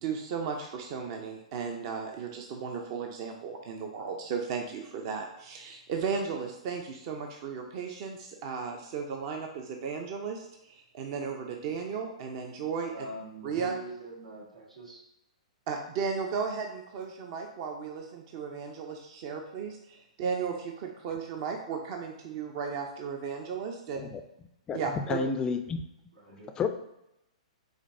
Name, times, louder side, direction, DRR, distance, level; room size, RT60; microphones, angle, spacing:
voice 1, 0.0-13.1 13.4-13.8 15.7-24.1 24.7-25.2, right 6 dB, 45° right, 3 dB, 0.5 m, -35 dB
voice 2, 12.5-15.0 26.1-26.5, right 2 dB, 85° right, -5 dB, 1.6 m, -43 dB
voice 3, 24.7-25.8 26.6-26.7, left 5 dB, 20° left, 8 dB, 0.3 m, -30 dB
5.1 x 3.4 x 2.6 m, 0.87 s
hypercardioid pair, 120°, 4 cm